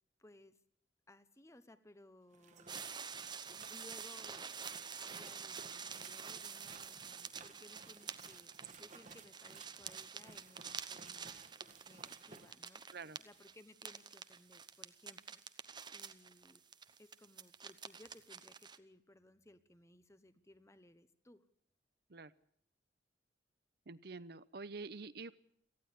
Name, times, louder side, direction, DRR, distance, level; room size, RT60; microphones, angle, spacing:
voice 1, 0.2-0.6 1.1-2.8 3.7-4.4 5.0-11.5 11.9-12.8 13.2-15.4 15.9-16.6 17.0-21.4, left 1 dB, 15° left, 12 dB, 1.1 m, -61 dB
sound 1, 2.3-12.5, right 4 dB, 45° right, 1.6 m, -58 dB
sound 2, 2.7-18.8, right 6 dB, 25° right, 0.9 m, -48 dB
voice 2, 23.9-25.3, right 4 dB, 65° right, 15 dB, 0.8 m, -47 dB
18.5 x 15.0 x 10.0 m, 0.65 s
head